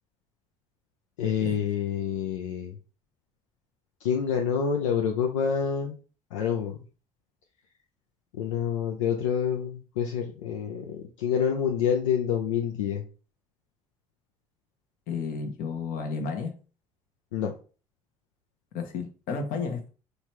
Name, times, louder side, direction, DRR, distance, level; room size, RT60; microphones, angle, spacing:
voice 1, 1.2-2.8 4.0-6.0 6.3-6.8 8.3-13.0 17.3-17.5, left 7 dB, 80° left, 2 dB, 0.5 m, -27 dB
voice 2, 15.1-16.5 18.7-19.9, left 5 dB, 65° left, 5 dB, 0.9 m, -32 dB
3.9 x 3.3 x 3.0 m, 0.37 s
hypercardioid pair, 55°, 16 cm